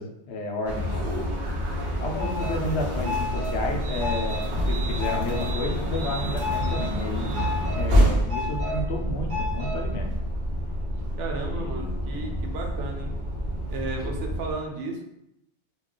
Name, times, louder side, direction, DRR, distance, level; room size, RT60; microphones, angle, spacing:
voice 1, 0.0-1.3 2.0-7.3 7.6-10.1 11.4-12.4 14.0-14.1, left 2 dB, 70° left, 1 dB, 0.8 m, -32 dB
sound 1, 0.6-14.5, equal, 55° right, 0.6 m, -27 dB
voice 2, 11.2-13.2 13.7-15.0, right 3 dB, 85° right, 2 dB, 0.9 m, -34 dB
2.3 x 2.3 x 3.6 m, 0.80 s
omnidirectional pair, 1.2 m